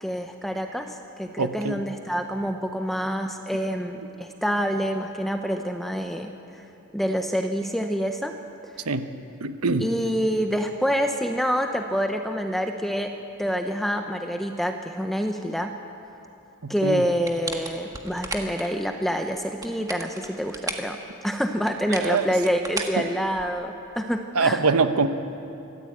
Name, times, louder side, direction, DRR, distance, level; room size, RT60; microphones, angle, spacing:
voice 1, 0.0-6.6 6.9-8.4 8.6-8.7 9.8-15.7 16.7-24.6, equal, ahead, 5 dB, 0.7 m, -27 dB
voice 2, 1.4-1.8 8.9-9.1 9.4-9.9 16.6-17.1 22.0-22.3 22.9-23.0 24.3-25.1, right 4 dB, 85° right, 10 dB, 1.0 m, -23 dB
sound 1, 17.2-18.7 19.5-20.9 21.7-23.7, right 3 dB, 15° right, 1.5 m, -35 dB
24.0 x 15.0 x 8.6 m, 2.9 s
head